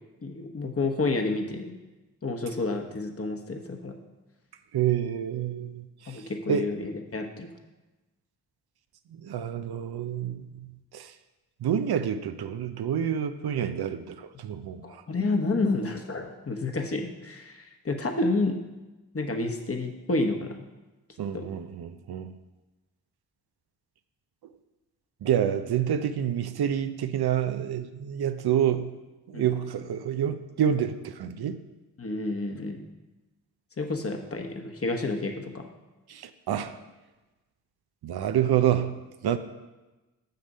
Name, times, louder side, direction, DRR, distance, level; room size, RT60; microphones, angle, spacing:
voice 1, 0.2-1.8 2.2-4.0 6.1-7.5 14.8-18.6 19.1-20.6 21.3-21.5 29.3-29.5 32.0-32.8 33.8-35.7, left 2 dB, 35° left, 4 dB, 1.2 m, -30 dB
voice 2, 4.7-6.7 9.2-11.1 11.6-15.0 21.2-22.3 24.4-24.5 25.2-29.0 29.3-31.6 36.1-36.8 38.0-39.4, right 9 dB, 70° right, 10 dB, 0.6 m, -28 dB
6.7 x 6.6 x 5.4 m, 1.1 s
cardioid pair, 50°, 39 cm